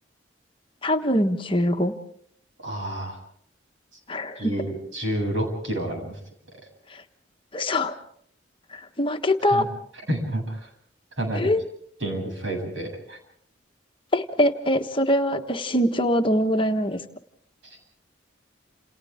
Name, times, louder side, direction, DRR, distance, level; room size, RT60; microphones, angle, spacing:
voice 1, 0.8-1.9 4.1-4.5 6.9-7.0 7.5-8.0 8.7-9.7 11.3-11.6 14.1-17.0, left 1 dB, 25° left, 6 dB, 1.3 m, -23 dB
voice 2, 2.6-3.2 4.4-6.2 9.4-9.7 10.1-10.7 11.2-11.5 12.0-13.2 17.6-17.8, right 1 dB, 80° right, 2 dB, 7.8 m, -29 dB
28.5 x 28.5 x 3.6 m, 0.64 s
head